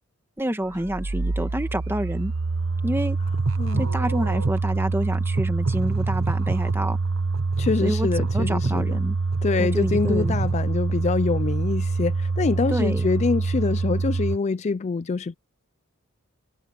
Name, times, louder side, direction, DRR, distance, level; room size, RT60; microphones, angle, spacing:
voice 1, 0.4-2.3 2.8-3.2 3.8-7.0 7.8-8.1 8.3-9.1 9.6-10.4 12.7-13.0, right 1 dB, 10° right, 1.6 m, -28 dB
sound 1, 0.7-14.4, right 3 dB, 65° right, 1.0 m, -25 dB
voice 2, 7.6-9.0 9.4-15.4, left 4 dB, 30° left, 0.3 m, -25 dB
head